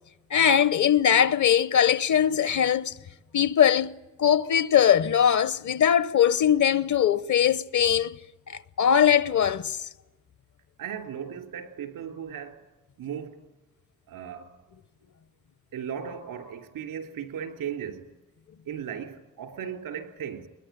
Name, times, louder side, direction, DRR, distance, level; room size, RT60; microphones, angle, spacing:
voice 1, 0.3-2.9 3.3-8.2 8.5-9.8, left 9 dB, 60° left, 1.0 m, -21 dB
voice 2, 10.8-12.7 13.0-13.5 14.1-14.6 15.7-18.1 18.6-20.5, right 8 dB, 85° right, 3.1 m, -36 dB
22.0 x 21.0 x 9.1 m
supercardioid pair, 50°, 33 cm